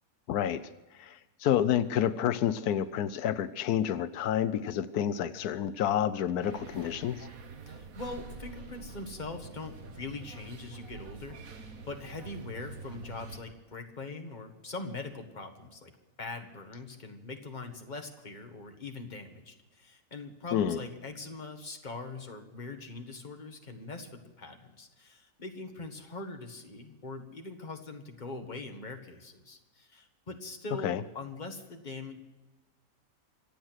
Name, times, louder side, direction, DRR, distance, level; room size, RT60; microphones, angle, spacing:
voice 1, 0.3-0.6 1.0-7.3 20.5-20.8 30.8-31.0, left 10 dB, 85° left, 14 dB, 1.2 m, -29 dB
sound 1, 6.4-13.4, right 4 dB, 65° right, 1.7 m, -46 dB
voice 2, 7.7-15.9 16.2-32.2, left 3 dB, 30° left, 4 dB, 1.8 m, -42 dB
26.0 x 8.8 x 6.3 m, 1.1 s
omnidirectional pair, 1.6 m